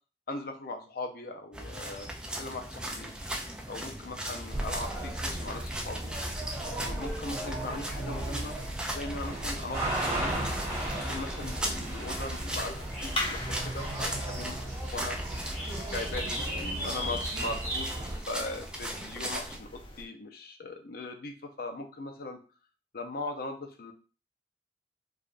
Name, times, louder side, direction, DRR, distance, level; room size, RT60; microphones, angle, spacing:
voice 1, 0.3-2.1 2.4-3.1 3.7-6.1 6.7-8.5 8.9-10.5 10.9-15.2 15.9-22.4 22.9-23.9, left 2 dB, 55° left, 4 dB, 0.6 m, -39 dB
sound 1, 1.5-19.6, right 1 dB, 5° right, 0.4 m, -39 dB
sound 2, 4.5-18.2, right 1 dB, 20° right, 1.8 m, -35 dB
sound 3, 9.8-20.1, left 1 dB, 30° left, 0.9 m, -43 dB
4.6 x 2.4 x 2.5 m, 0.37 s
head